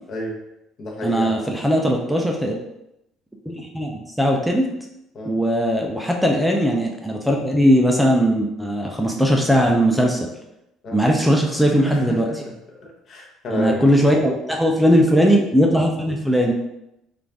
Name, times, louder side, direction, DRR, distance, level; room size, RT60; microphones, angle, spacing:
voice 1, 0.1-0.4 0.8-1.5 5.1-5.3 10.8-11.0 11.8-12.5 12.8-13.8, left 1 dB, 40° left, 0 dB, 0.8 m, -30 dB
voice 2, 1.0-2.6 3.5-4.7 5.3-10.3 10.9-12.3 13.5-16.5, equal, ahead, 0 dB, 0.4 m, -19 dB
3.8 x 2.4 x 3.4 m, 0.85 s
cardioid pair, 140°, 0 cm